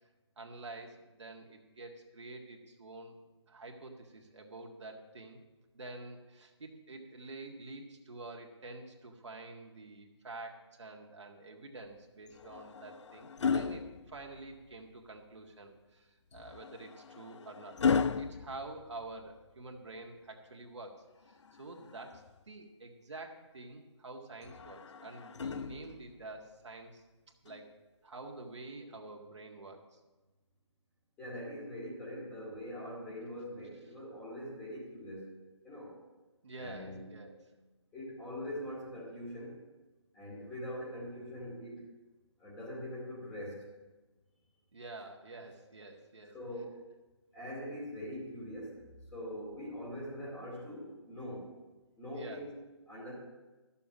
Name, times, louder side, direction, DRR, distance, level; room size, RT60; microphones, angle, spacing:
voice 1, 0.4-3.2 3.5-5.4 5.7-27.0 27.4-27.7 28.0-30.0 36.4-37.4 44.7-46.4 52.1-52.4, right 2 dB, 70° right, 1 dB, 1.8 m, -48 dB
sound 1, 12.3-14.7 16.3-19.5 21.3-22.4 24.4-26.2 27.5-27.7, left 6 dB, 70° left, 0.4 m, -36 dB
voice 2, 31.2-35.3 35.6-36.0 36.6-37.1 37.9-39.6 40.1-41.8 42.4-43.7 46.3-46.8 47.3-48.8 49.1-51.5 52.0-52.5 52.9-53.1, equal, 10° left, -6 dB, 2.4 m, -42 dB
13.0 x 7.3 x 6.2 m, 1.2 s
figure-of-eight pair, 160°, 15 cm